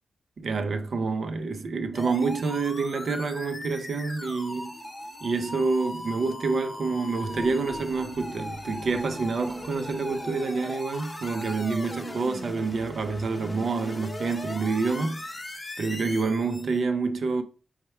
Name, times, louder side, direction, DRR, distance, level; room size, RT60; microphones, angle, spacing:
voice 1, 0.4-4.8 5.2-15.2 15.8-17.4, right 4 dB, 65° right, 0.6 m, -28 dB
sound 1, 1.9-16.8, left 1 dB, 25° left, 0.7 m, -39 dB
4.4 x 2.2 x 4.3 m
cardioid pair, 90°, 0 cm